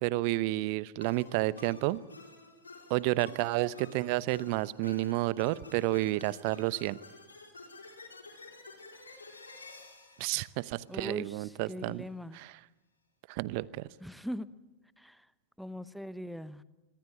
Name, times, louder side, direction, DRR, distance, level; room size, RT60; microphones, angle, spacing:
voice 1, 0.0-2.0 2.9-7.0 10.2-12.1 12.3-12.6 13.3-13.9, right 18 dB, 45° right, 19 dB, 0.8 m, -31 dB
sound 1, 1.0-11.4, left 3 dB, 80° left, 4.7 m, -51 dB
voice 2, 10.9-12.4 14.0-14.5 15.0-15.2 15.6-16.6, equal, ahead, 16 dB, 1.0 m, -41 dB
26.0 x 23.5 x 9.3 m, 1.1 s
figure-of-eight pair, 90°, 0 cm